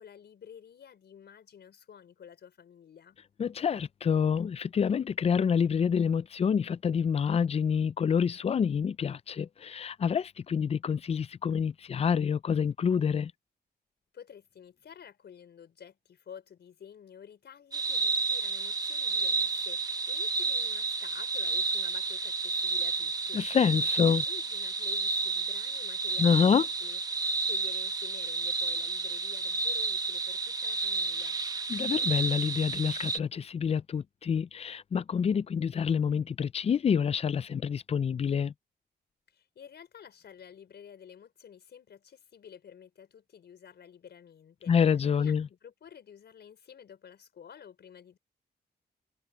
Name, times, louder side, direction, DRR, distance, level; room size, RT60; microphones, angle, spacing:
voice 1, 0.0-3.2 14.1-23.4 24.0-31.4 39.3-44.7 45.1-48.2, left 8 dB, 70° left, 4.8 m, -51 dB
voice 2, 3.4-13.3 23.3-24.2 26.2-26.6 31.7-38.5 44.7-45.5, left 7 dB, 35° left, 0.4 m, -27 dB
sound 1, 17.7-33.2, right 3 dB, 20° right, 0.9 m, -31 dB
wide cardioid pair, 140°, 18 cm